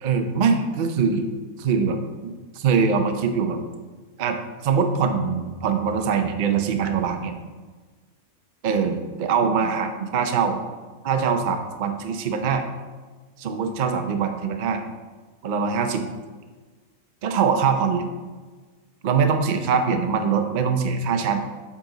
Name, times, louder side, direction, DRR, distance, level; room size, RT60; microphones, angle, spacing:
voice 1, 0.0-1.3 1.6-2.0 2.2-3.6 4.2-4.4 4.6-7.3 8.6-10.6 11.0-12.6 13.4-14.8 15.4-16.0 17.2-18.1 19.0-21.4, right 6 dB, 60° right, 6 dB, 0.5 m, -23 dB
7.4 x 4.1 x 3.8 m, 1.4 s
omnidirectional pair, 1.4 m